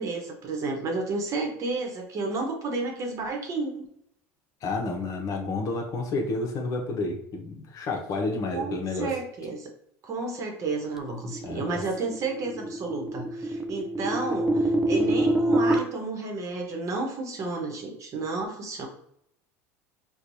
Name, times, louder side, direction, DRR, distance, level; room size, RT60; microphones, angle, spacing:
voice 1, 0.0-3.9 8.5-9.7 10.0-18.9, right 3 dB, 40° right, 2 dB, 1.0 m, -31 dB
voice 2, 4.6-9.1 11.4-11.7, left 3 dB, 50° left, 2 dB, 0.9 m, -30 dB
sound 1, 11.1-15.8, right 1 dB, 5° right, 0.4 m, -26 dB
4.4 x 2.3 x 2.7 m, 0.71 s
hypercardioid pair, 95°, 8 cm